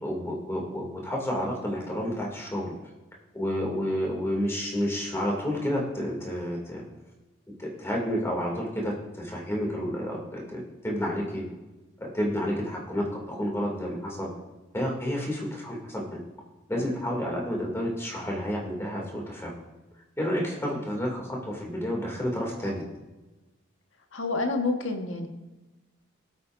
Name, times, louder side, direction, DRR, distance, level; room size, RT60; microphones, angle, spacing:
voice 1, 0.0-2.7 3.3-6.8 7.6-11.4 12.0-14.3 14.7-16.2 16.7-19.5 20.2-22.8, equal, 15° left, -2 dB, 2.5 m, -30 dB
voice 2, 24.1-25.3, left 3 dB, 70° left, 4 dB, 1.4 m, -28 dB
19.0 x 8.5 x 2.6 m, 1.1 s
head